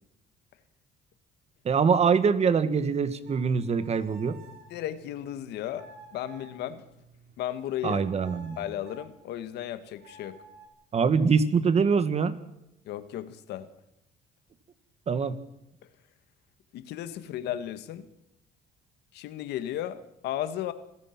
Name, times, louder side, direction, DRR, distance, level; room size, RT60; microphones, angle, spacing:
voice 1, 1.6-4.4 7.8-8.6 10.9-12.3 15.1-15.4, right 6 dB, 40° right, 13 dB, 1.6 m, -24 dB
sound 1, 3.1-7.5 7.8-9.1 10.0-10.7, right 3 dB, 80° right, 3.8 m, -52 dB
voice 2, 4.7-6.8 7.4-8.0 8.6-10.4 12.9-13.7 16.7-18.1 19.1-20.7, left 11 dB, 80° left, 12 dB, 1.7 m, -35 dB
27.0 x 16.5 x 6.0 m, 0.84 s
cardioid pair, 110°, 17 cm